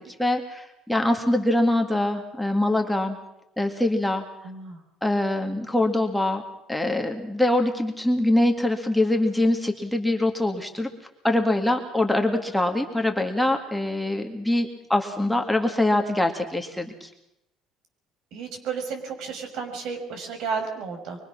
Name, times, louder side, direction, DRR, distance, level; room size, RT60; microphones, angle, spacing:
voice 1, 0.0-3.2 3.6-4.2 5.0-6.4 6.7-10.9 11.2-17.1, left 1 dB, ahead, 3 dB, 2.2 m, -23 dB
voice 2, 4.4-4.8 18.3-21.2, right 5 dB, 65° right, 5 dB, 5.7 m, -32 dB
24.0 x 23.5 x 6.2 m, 0.85 s
cardioid pair, 115°, 0 cm